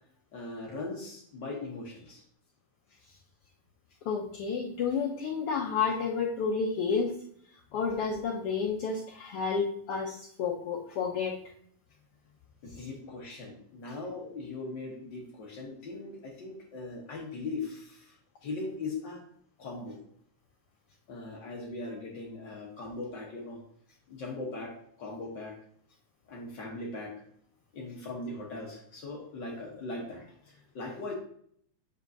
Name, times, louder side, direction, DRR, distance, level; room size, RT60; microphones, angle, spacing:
voice 1, 0.3-2.2 12.6-18.2 18.4-19.2 19.6-20.0 21.1-23.6 24.1-25.6 26.3-27.1 27.7-31.1, left 2 dB, 60° left, -1 dB, 1.2 m, -39 dB
voice 2, 4.1-7.1 7.7-11.4, left 5 dB, 85° left, 0 dB, 1.3 m, -30 dB
7.7 x 5.2 x 2.6 m, 0.65 s
omnidirectional pair, 3.4 m